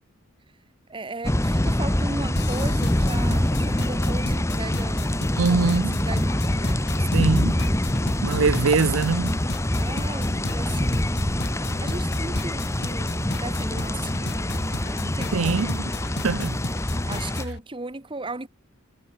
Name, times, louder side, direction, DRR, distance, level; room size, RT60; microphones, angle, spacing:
voice 1, 0.9-5.2 5.5-5.6 6.1-7.3 9.7-11.3 11.8-15.5 15.8-16.0 17.1-18.5, right 2 dB, 25° right, 1.3 m, -37 dB
sound 1, 1.2-17.4, left 1 dB, 15° left, 1.1 m, -25 dB
sound 2, 2.4-17.6, left 2 dB, 55° left, 2.2 m, -34 dB
voice 2, 5.4-6.0 7.1-7.6 8.2-9.4 15.3-15.8 16.2-16.6, right 4 dB, 85° right, 0.6 m, -22 dB
head